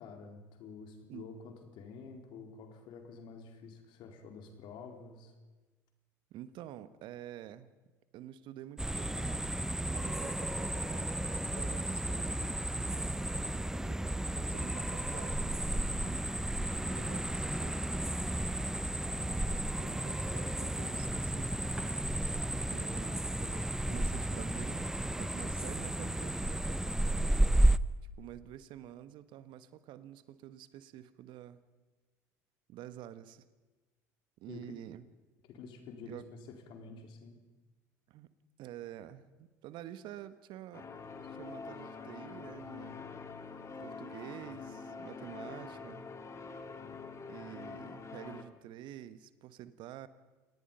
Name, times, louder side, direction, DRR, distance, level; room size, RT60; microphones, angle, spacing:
voice 1, 0.0-5.3 34.5-34.6 35.4-37.4, left 4 dB, 60° left, 5 dB, 4.3 m, -49 dB
voice 2, 6.3-7.7 8.1-9.6 9.8-12.7 13.8-18.0 19.1-22.1 22.5-27.3 28.2-31.6 32.7-33.5 34.4-35.1 36.0-36.2 38.1-38.3 38.6-40.9 41.2-43.0 43.8-46.1 47.3-50.1, right 12 dB, 60° right, 14 dB, 1.3 m, -49 dB
sound 1, 8.8-27.8, right 1 dB, 5° right, 0.9 m, -33 dB
sound 2, 40.7-48.4, left 4 dB, 35° left, 3.1 m, -45 dB
28.5 x 19.0 x 5.6 m, 1.2 s
hypercardioid pair, 70°, 9 cm